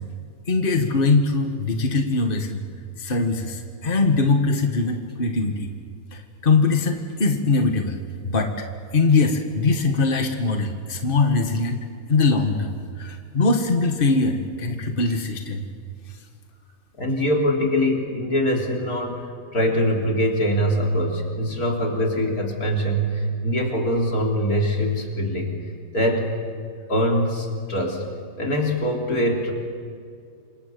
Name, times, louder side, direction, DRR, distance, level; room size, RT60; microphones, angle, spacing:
voice 1, 0.5-2.6 3.0-5.7 6.1-8.0 8.2-8.5 8.9-15.6, left 3 dB, 35° left, 4 dB, 1.9 m, -22 dB
voice 2, 17.0-19.3 19.5-25.5 25.9-26.3 26.9-28.0 28.4-29.5, equal, 85° left, 0 dB, 4.0 m, -23 dB
28.0 x 25.0 x 6.9 m, 2.3 s
omnidirectional pair, 1.5 m